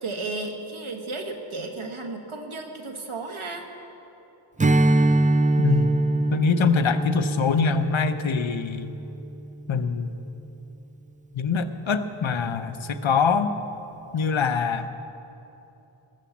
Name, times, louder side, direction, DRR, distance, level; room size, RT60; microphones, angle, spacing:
voice 1, 0.0-3.7, right 3 dB, 80° right, 3 dB, 1.6 m, -33 dB
Strum, 4.6-9.4, right 2 dB, 15° right, 0.4 m, -23 dB
voice 2, 5.6-5.9 6.3-8.9 9.7-10.2 11.3-13.6 14.1-14.9, left 5 dB, 70° left, 9 dB, 0.8 m, -24 dB
20.0 x 7.1 x 7.3 m, 3.0 s
wide cardioid pair, 70°, 48 cm